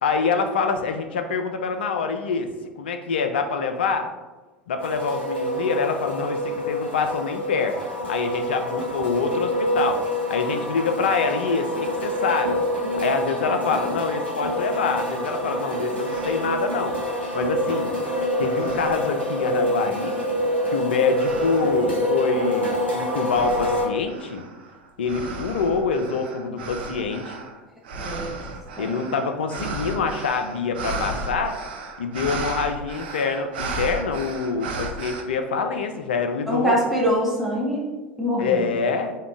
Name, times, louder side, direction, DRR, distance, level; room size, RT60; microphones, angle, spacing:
voice 1, 0.0-2.5 2.8-4.1 4.7-7.8 8.1-10.0 10.3-11.8 12.0-12.6 13.0-17.0 17.3-17.9 18.4-20.2 20.7-24.4 25.0-27.4 28.8-31.6 32.0-36.8 38.4-39.2, left 5 dB, 70° left, 6 dB, 0.4 m, -25 dB
sound 1, 4.8-23.9, equal, 90° left, 1.0 m, -26 dB
sound 2, 15.5-15.6 16.0-16.6 17.2-18.1 18.5-19.4 20.0-20.5 21.2-21.9 22.4-35.2, right 3 dB, 65° right, 0.5 m, -35 dB
voice 2, 28.0-28.4 28.8-28.9 36.5-37.9 38.2-38.6, equal, ahead, -4 dB, 0.7 m, -23 dB
3.6 x 2.3 x 3.6 m, 1.2 s
figure-of-eight pair, 75°, 6 cm